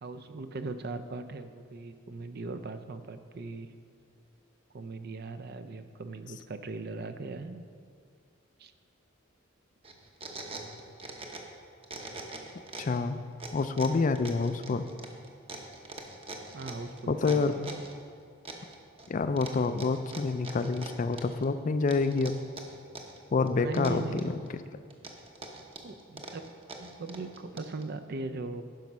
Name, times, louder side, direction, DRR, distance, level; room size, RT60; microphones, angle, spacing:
voice 1, 0.0-3.7 4.7-7.6 8.6-8.7 16.5-17.8 23.5-24.2 25.8-26.4 26.8-28.6, right 3 dB, 50° right, 10 dB, 0.5 m, -39 dB
sound 1, 9.8-11.6 11.8-13.0 13.4-17.9 18.5-19.1 19.4-21.5 21.9-23.2 23.5-24.5 24.9-27.8, right 3 dB, 30° right, 0.9 m, -43 dB
voice 2, 12.8-13.2 13.5-14.9 17.1-17.5 19.1-22.3 23.3-24.4, left 4 dB, 40° left, 10 dB, 0.4 m, -27 dB
10.5 x 6.0 x 5.4 m, 2.2 s
head